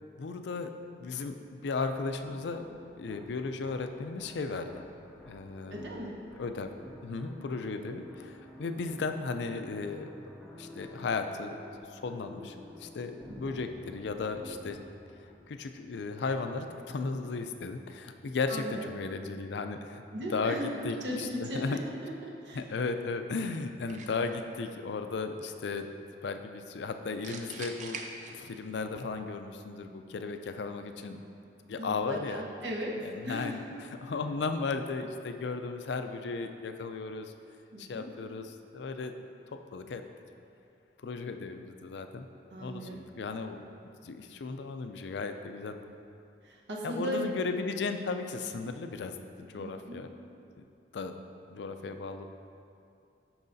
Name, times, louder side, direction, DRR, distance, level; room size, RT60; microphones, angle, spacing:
voice 1, 0.2-0.7 1.0-2.7 3.0-4.8 5.3-5.8 6.4-6.7 7.0-10.1 10.5-11.6 11.9-14.8 15.5-20.0 20.3-21.8 22.5-25.9 26.2-28.0 28.3-31.2 31.7-32.4 33.0-33.6 34.0-37.3 37.8-39.1 39.5-40.0 41.0-42.3 42.6-43.7 44.0-45.8 46.8-50.1 50.6-50.7 50.9-51.1 51.5-52.2, left 4 dB, 70° left, 7 dB, 0.4 m, -35 dB
sound 1, 2.2-15.9, left 1 dB, ahead, 0.5 m, -50 dB
voice 2, 5.7-6.1 13.3-13.5 18.5-18.9 20.1-22.6 31.8-33.0 33.2-33.6 37.7-38.1 42.5-43.0 46.4-47.2 49.5-50.0, equal, 80° right, -2 dB, 1.0 m, -37 dB
sound 2, 23.9-24.4 27.2-28.8, right 4 dB, 45° right, 0.5 m, -43 dB
12.0 x 4.8 x 2.7 m, 2.5 s
head